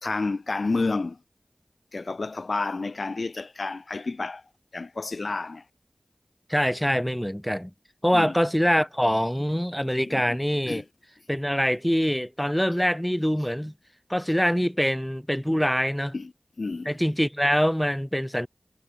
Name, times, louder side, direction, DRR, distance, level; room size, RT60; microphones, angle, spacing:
voice 1, 0.0-1.2 1.9-4.4 4.7-5.6 8.1-8.4 10.1-10.4 10.7-10.8 16.1-16.3 16.6-16.9, left 3 dB, 70° left, 2.2 m, -30 dB
voice 2, 6.5-7.7 8.0-10.8 11.3-13.7 14.1-16.1 16.9-18.5, equal, 5° left, 1.8 m, -24 dB
wide cardioid pair, 50°, 0 cm